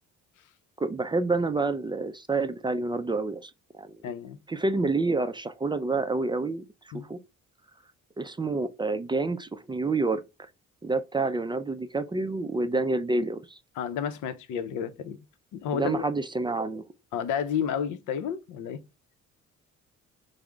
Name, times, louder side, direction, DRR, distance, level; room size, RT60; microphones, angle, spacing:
voice 1, 0.8-3.5 3.8-4.0 4.5-6.6 6.9-7.2 8.2-10.2 10.8-13.6 15.7-16.8, right 3 dB, 15° right, 0.3 m, -28 dB
voice 2, 4.0-4.4 6.9-7.1 13.8-15.2 15.5-16.0 17.1-18.8, left 8 dB, 80° left, 0.6 m, -31 dB
4.9 x 2.1 x 3.3 m
cardioid pair, 90°, 30 cm